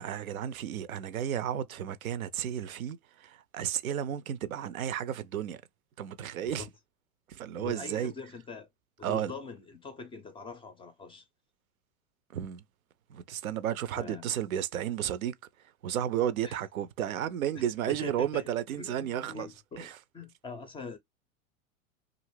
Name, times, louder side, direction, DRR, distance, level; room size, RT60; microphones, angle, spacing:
voice 1, 0.0-5.6 6.0-6.7 7.3-8.1 9.0-9.3 12.3-12.6 13.1-15.3 15.8-19.5 19.8-20.0, right 10 dB, 80° right, 0.6 m, -33 dB
voice 2, 6.4-6.7 7.5-8.7 9.0-11.2 14.0-14.2 16.4-16.6 17.5-19.9 20.1-21.0, left 4 dB, 15° left, 0.4 m, -43 dB
2.5 x 2.5 x 3.1 m
hypercardioid pair, 95°, 42 cm